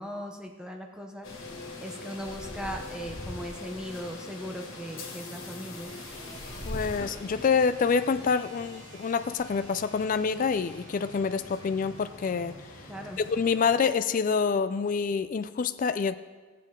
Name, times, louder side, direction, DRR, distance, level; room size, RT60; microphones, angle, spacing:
voice 1, 0.0-1.4 1.8-6.0 12.9-13.2, equal, 5° right, 2 dB, 0.7 m, -39 dB
sound 1, 1.2-13.7, left 2 dB, 65° left, 2.1 m, -42 dB
sound 2, 5.8-13.4, right 2 dB, 80° right, 4.0 m, -51 dB
voice 2, 6.7-12.5 13.3-16.1, left 5 dB, 40° left, 11 dB, 0.3 m, -27 dB
16.5 x 7.6 x 3.7 m, 1.4 s
head